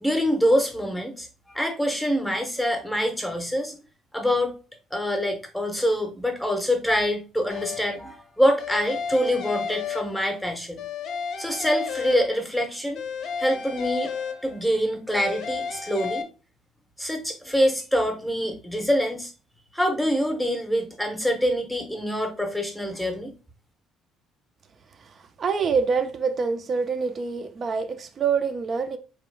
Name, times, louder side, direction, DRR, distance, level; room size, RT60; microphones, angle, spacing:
voice 1, 0.0-3.8 4.1-4.5 4.9-10.8 11.4-13.0 13.4-14.1 14.4-16.2 17.0-19.3 19.7-23.3, equal, ahead, 0.8 m, -25 dB
sound 1, 7.5-8.1 8.6-10.4 10.8-12.6 12.9-14.7 15.1-16.2, left 6 dB, 50° left, 0.7 m, -33 dB
voice 2, 25.4-29.0, right 5 dB, 30° right, 0.4 m, -25 dB
4.5 x 3.0 x 3.2 m
cardioid pair, 175°, 0 cm